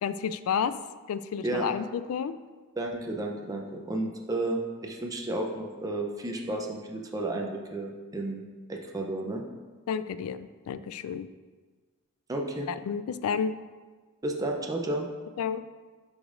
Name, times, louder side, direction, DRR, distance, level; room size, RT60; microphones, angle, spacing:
voice 1, 0.0-0.7 1.1-2.3 9.9-11.3 12.7-13.5 15.4-15.6, left 7 dB, 70° left, 12 dB, 0.3 m, -31 dB
voice 2, 2.8-8.4 8.7-9.4 12.3-12.7 14.2-15.1, right 2 dB, 15° right, 1 dB, 0.5 m, -32 dB
11.5 x 5.0 x 2.5 m, 1.4 s
head